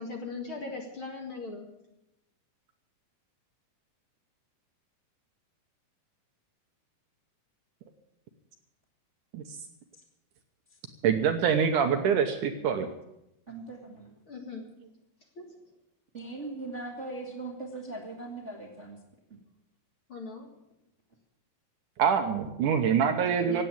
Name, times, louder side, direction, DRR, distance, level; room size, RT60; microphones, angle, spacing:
voice 1, 0.0-1.7 14.3-14.7 15.3-15.4 17.8-18.0 20.1-20.5 22.9-23.6, left 3 dB, 40° left, 2 dB, 2.2 m, -39 dB
voice 2, 11.0-12.9 22.0-23.6, right 7 dB, 70° right, 6 dB, 2.2 m, -25 dB
voice 3, 13.5-14.1 16.1-19.0 19.3-19.4, right 2 dB, 30° right, 1 dB, 1.5 m, -39 dB
16.5 x 9.2 x 8.6 m, 0.89 s
omnidirectional pair, 4.3 m